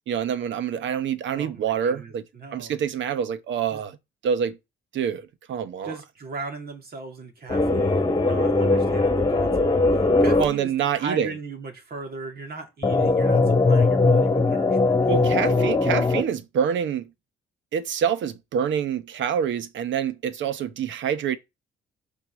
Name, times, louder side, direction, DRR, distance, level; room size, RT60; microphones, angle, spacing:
voice 1, 0.1-2.2 2.5-4.0 4.2-4.6 4.9-6.0 10.4-11.4 15.1-17.1 17.7-21.4, right 8 dB, 70° right, 0.9 m, -26 dB
voice 2, 1.3-2.8 3.7-3.8 5.8-15.7, right 4 dB, 50° right, 2.4 m, -38 dB
sound 1, 7.5-10.5 12.8-16.2, left 3 dB, 20° left, 1.7 m, -20 dB
6.0 x 4.1 x 6.2 m
cardioid pair, 90°, 20 cm